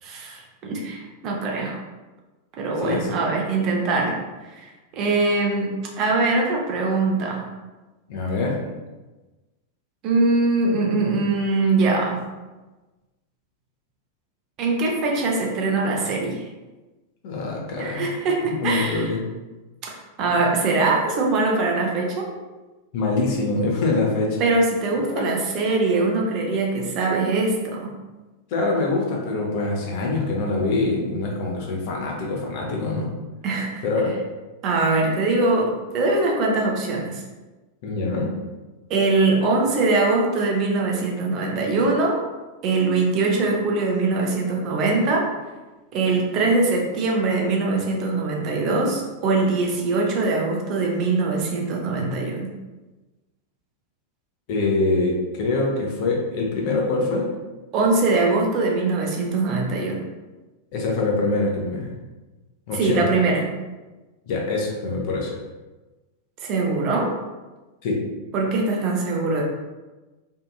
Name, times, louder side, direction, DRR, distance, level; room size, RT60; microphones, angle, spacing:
voice 1, 0.0-1.8 2.6-4.2 4.5-7.4 10.0-12.2 14.6-16.5 17.8-19.1 19.8-22.3 24.4-27.9 33.4-33.8 34.6-37.2 38.9-42.2 42.6-45.3 45.9-52.5 57.7-60.0 62.7-63.5 66.4-67.1 68.3-69.4, right 3 dB, 40° right, -1 dB, 0.5 m, -22 dB
voice 2, 2.8-3.1 8.1-8.6 17.2-18.0 18.5-19.2 22.9-24.4 25.1-25.2 28.5-33.1 33.8-34.1 37.8-38.3 54.5-57.3 60.7-61.9 62.7-63.0 64.3-65.4 67.8-68.0, left 3 dB, 45° left, -1 dB, 0.6 m, -24 dB
2.7 x 2.5 x 2.3 m, 1.2 s
figure-of-eight pair, 90°, 0 cm